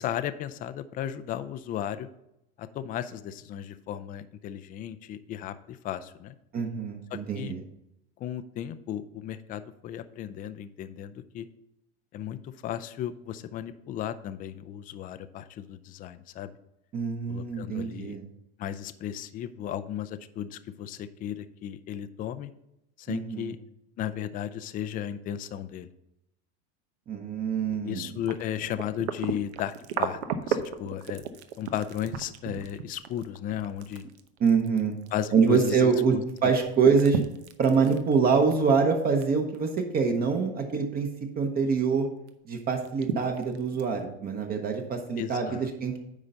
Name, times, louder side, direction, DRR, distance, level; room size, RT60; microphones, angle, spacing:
voice 1, 0.0-2.1 2.6-6.3 7.1-7.6 8.2-11.5 12.1-16.5 17.3-18.2 18.6-22.5 23.0-23.6 24.0-25.9 27.8-31.2 31.6-34.0 35.1-36.5 45.2-45.7, left 10 dB, 25° left, 13 dB, 0.4 m, -35 dB
voice 2, 6.5-7.6 16.9-18.2 23.1-23.5 27.1-28.1 34.4-34.9 35.3-36.2 36.4-37.2 37.6-41.1 41.4-42.1 42.5-46.0, right 5 dB, 30° right, 4 dB, 0.9 m, -25 dB
sound 1, 28.1-36.0 36.3-39.2 39.5-40.0 40.4-40.5 41.8-41.9 42.3-42.4 42.8-44.0 44.8-44.9, right 9 dB, 85° right, 0.9 m, -34 dB
9.8 x 3.9 x 5.5 m, 0.83 s
supercardioid pair, 135°, 32 cm